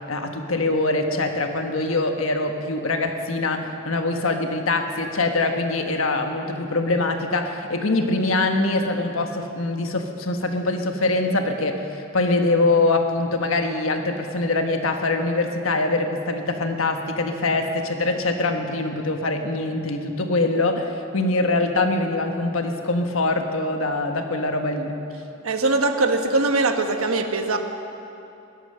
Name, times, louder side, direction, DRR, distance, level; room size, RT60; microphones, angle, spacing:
voice 1, 0.1-25.0, left 2 dB, 70° left, 5 dB, 1.3 m, -23 dB
voice 2, 25.4-27.6, right 3 dB, 85° right, 5 dB, 1.2 m, -21 dB
16.5 x 12.0 x 6.6 m, 2.8 s
head